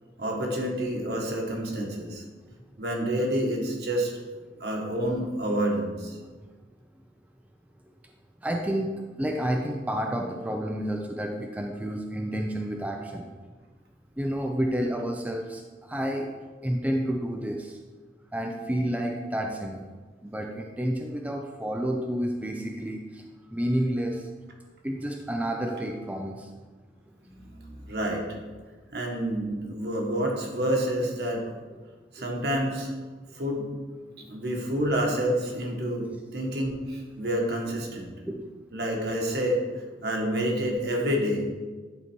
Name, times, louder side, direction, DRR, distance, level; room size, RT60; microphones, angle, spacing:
voice 1, 0.2-2.2 2.8-4.2 4.6-6.2 27.2-28.3 28.9-31.4 32.1-32.9 33.3-33.7 34.2-38.1 38.7-39.6 40.0-41.5, equal, 65° right, 0 dB, 1.5 m, -28 dB
voice 2, 8.4-13.3 14.2-16.3 16.6-17.8 18.3-19.8 20.2-23.2 23.5-24.3 24.8-26.5 32.2-32.3 38.3-38.4, equal, 10° right, 1 dB, 0.4 m, -30 dB
11.0 x 4.1 x 4.5 m, 1.4 s
head